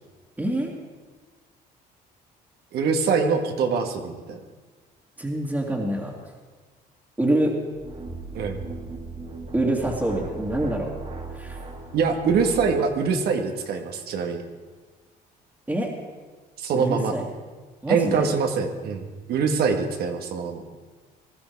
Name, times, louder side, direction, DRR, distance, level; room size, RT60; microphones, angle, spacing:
voice 1, 0.4-0.7 5.2-6.1 7.2-7.5 9.5-10.9 11.3-11.6 15.7-15.9 16.7-17.2 17.8-18.3, right 1 dB, 10° right, -5 dB, 2.3 m, -25 dB
voice 2, 2.7-4.4 8.3-8.6 11.9-14.4 16.6-17.1 17.9-20.6, right 5 dB, 70° right, 5 dB, 1.8 m, -24 dB
sound 1, 7.7-13.0, right 3 dB, 45° right, 2.7 m, -38 dB
19.5 x 13.0 x 4.7 m, 1.4 s
cardioid pair, 110°, 17 cm